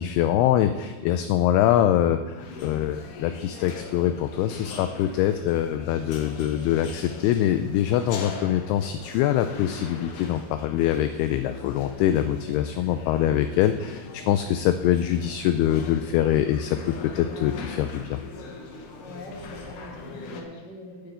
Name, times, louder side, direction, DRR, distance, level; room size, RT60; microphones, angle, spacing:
voice 1, 0.0-18.2, left 11 dB, 85° left, 9 dB, 2.4 m, -24 dB
sound 1, 2.4-20.4, left 4 dB, 65° left, 2.2 m, -41 dB
voice 2, 19.0-21.1, left 1 dB, 35° left, -2 dB, 1.9 m, -42 dB
9.6 x 6.8 x 8.1 m, 1.2 s
omnidirectional pair, 4.8 m